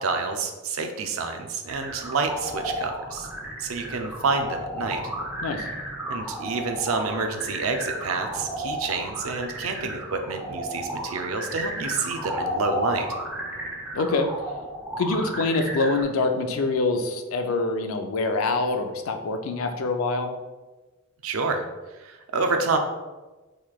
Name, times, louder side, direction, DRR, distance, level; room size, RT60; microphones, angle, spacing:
voice 1, 0.0-3.3 3.6-5.0 6.1-13.1 21.2-21.6 21.9-22.8, right 4 dB, 80° right, 6 dB, 0.5 m, -28 dB
sound 1, 1.7-16.0, equal, 10° right, 0.5 m, -33 dB
voice 2, 13.9-14.3 15.0-20.3, left 3 dB, 85° left, 6 dB, 0.4 m, -25 dB
3.8 x 3.1 x 2.3 m, 1.2 s
head